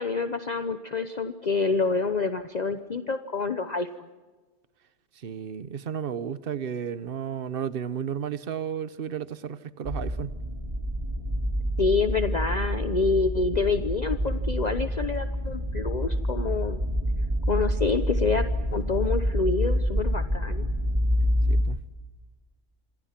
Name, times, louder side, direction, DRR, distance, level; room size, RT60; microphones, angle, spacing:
voice 1, 0.0-3.9 11.8-16.8 17.5-20.6, left 4 dB, 40° left, 9 dB, 1.0 m, -27 dB
voice 2, 5.2-10.4 21.5-21.8, right 8 dB, 55° right, 15 dB, 1.1 m, -33 dB
sound 1, 9.8-21.6, equal, 25° right, 3.5 m, -27 dB
27.5 x 25.5 x 5.9 m, 1.3 s
omnidirectional pair, 1.2 m